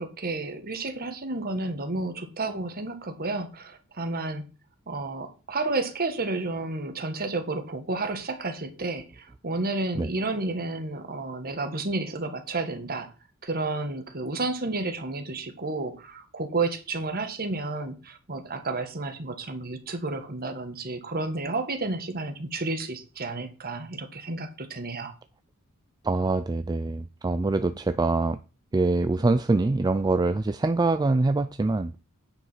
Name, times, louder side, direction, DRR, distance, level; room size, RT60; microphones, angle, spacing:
voice 1, 0.0-4.4 4.9-13.1 13.4-25.1, right 3 dB, 45° right, 1.6 m, -31 dB
voice 2, 26.0-28.4 28.7-31.9, right 3 dB, 20° right, 0.3 m, -24 dB
9.5 x 5.3 x 5.7 m
head